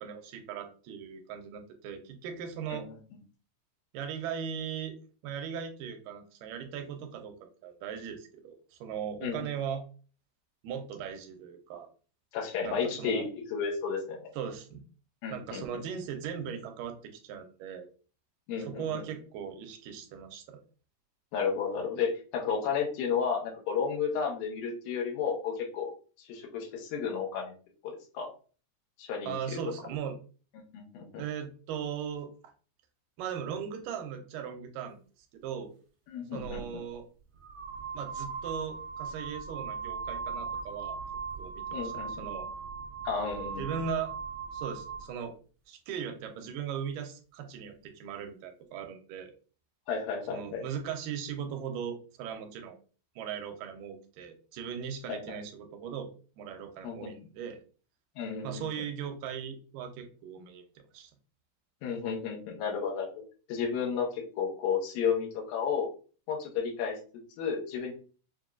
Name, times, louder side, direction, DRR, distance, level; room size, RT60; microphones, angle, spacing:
voice 1, 0.0-2.9 3.9-5.0 5.2-9.8 10.6-11.9 12.6-13.3 14.3-14.8 15.3-17.9 18.6-20.6 29.2-30.2 31.2-32.3 33.2-35.0 35.4-35.7 36.3-37.1 37.9-41.0 41.4-42.5 43.6-44.1 44.5-45.3 45.7-49.3 50.3-52.8 53.2-57.6 58.4-60.6 60.9-61.1, right 7 dB, 80° right, 5 dB, 2.2 m, -38 dB
voice 2, 12.3-14.3 15.2-15.6 18.5-19.0 21.3-25.9 26.3-27.5 27.8-28.3 29.0-29.4 30.7-31.1 36.1-36.6 41.7-42.3 43.0-43.7 49.9-50.6 55.1-55.4 56.8-57.1 58.2-58.6 61.8-63.2 63.5-65.9 66.3-67.0 67.4-67.9, left 6 dB, 85° left, 0 dB, 2.6 m, -32 dB
sound 1, 36.4-36.6 37.4-45.1, right 5 dB, 55° right, 1.9 m, -38 dB
6.7 x 2.3 x 2.4 m, 0.38 s
omnidirectional pair, 3.9 m